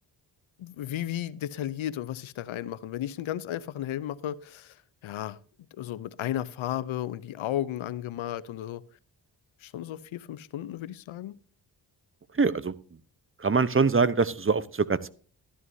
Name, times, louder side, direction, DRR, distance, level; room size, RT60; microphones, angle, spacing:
voice 1, 0.6-4.8 5.0-5.4 5.8-8.8 9.6-11.3, left 12 dB, 80° left, 0.7 m, -34 dB
voice 2, 12.3-12.7 13.4-15.1, right 4 dB, 25° right, 0.8 m, -24 dB
12.5 x 11.0 x 2.7 m
supercardioid pair, 45°, 47 cm